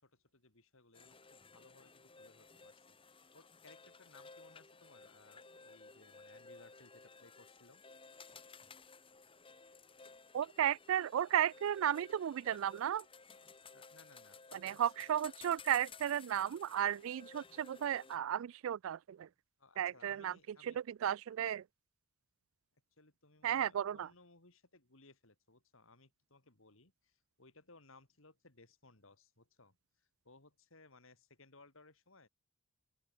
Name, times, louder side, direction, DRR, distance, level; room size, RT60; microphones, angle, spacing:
voice 1, 0.0-7.8 13.7-14.8 19.6-20.8 22.9-32.3, left 3 dB, 65° left, 3.3 m, -63 dB
sound 1, 0.9-18.2, left 4 dB, 25° left, 1.8 m, -57 dB
voice 2, 10.3-13.0 14.5-19.3 19.8-20.3 20.6-21.6 23.4-24.1, right 10 dB, 65° right, 0.3 m, -34 dB
open air
head